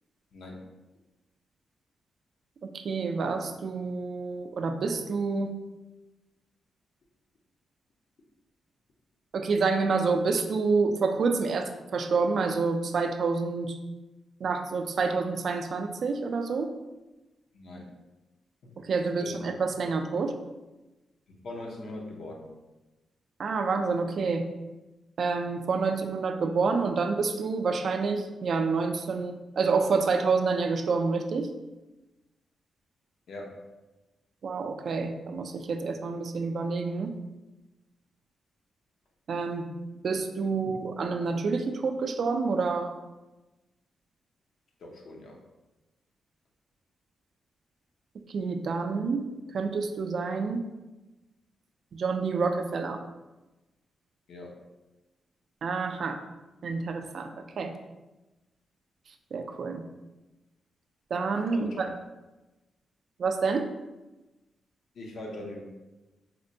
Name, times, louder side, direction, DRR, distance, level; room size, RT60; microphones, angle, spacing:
voice 1, 0.3-0.6 17.5-17.9 18.6-18.8 19.2-19.4 21.3-22.6 33.3-33.7 40.6-40.7 44.8-45.4 54.3-54.6 61.5-61.8 64.9-65.6, left 1 dB, 70° left, 0 dB, 0.6 m, -41 dB
voice 2, 2.6-5.5 9.3-13.8 14.4-16.7 18.8-20.3 23.4-24.5 25.2-31.5 34.4-37.1 39.3-39.7 40.0-43.0 48.3-50.6 51.9-53.0 55.6-56.2 56.6-57.7 59.3-59.8 61.1-61.9 63.2-63.7, right 4 dB, 65° right, 6 dB, 0.3 m, -28 dB
4.2 x 2.1 x 2.6 m, 1.1 s
cardioid pair, 80°, 0 cm